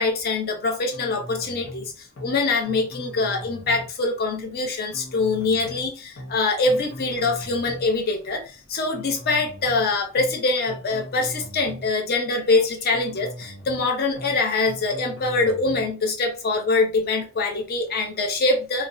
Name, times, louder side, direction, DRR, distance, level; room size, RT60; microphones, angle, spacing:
voice 1, 0.0-18.9, left 3 dB, 45° left, 0.5 m, -24 dB
sound 1, 0.9-1.9 2.2-2.4 2.7-3.9 4.9-5.9 6.2-6.4 6.7-7.9 8.9-9.9 10.2-10.4 10.7-11.9 12.9-13.9 14.2-14.4 14.7-15.9, equal, 90° left, 0.9 m, -39 dB
2.3 x 2.2 x 2.5 m
head